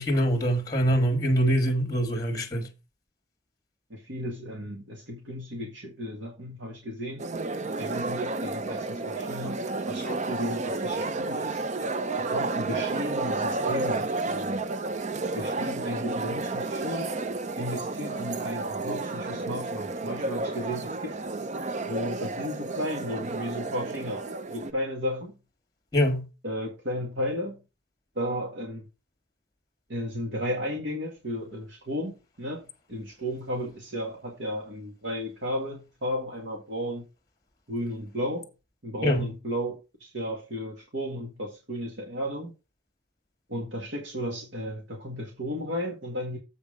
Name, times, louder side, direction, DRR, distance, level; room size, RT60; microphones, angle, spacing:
voice 1, 0.0-2.7 25.9-26.3 39.0-39.3, equal, 20° left, 1.5 m, -24 dB
voice 2, 3.9-7.2 7.8-11.6 12.2-14.7 15.4-17.1 17.6-21.1 21.9-25.4 26.4-27.6 28.2-28.9 29.9-37.1 37.7-38.5 38.8-42.5 43.5-46.4, equal, 85° right, 1.9 m, -34 dB
sound 1, 7.2-24.7, right 3 dB, 40° right, 0.5 m, -31 dB
7.8 x 5.4 x 5.1 m
head